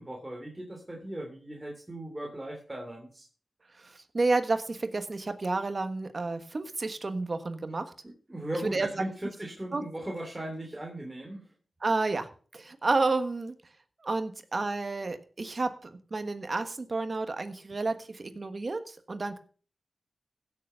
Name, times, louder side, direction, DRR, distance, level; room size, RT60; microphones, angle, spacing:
voice 1, 0.0-3.3 8.3-11.5, right 1 dB, 15° right, 0 dB, 3.1 m, -38 dB
voice 2, 3.8-7.9 8.6-9.1 9.7-9.8 11.8-13.5 14.0-19.4, right 3 dB, 45° right, 9 dB, 1.4 m, -31 dB
15.5 x 7.1 x 5.7 m, 0.41 s
wide cardioid pair, 80°, 0 cm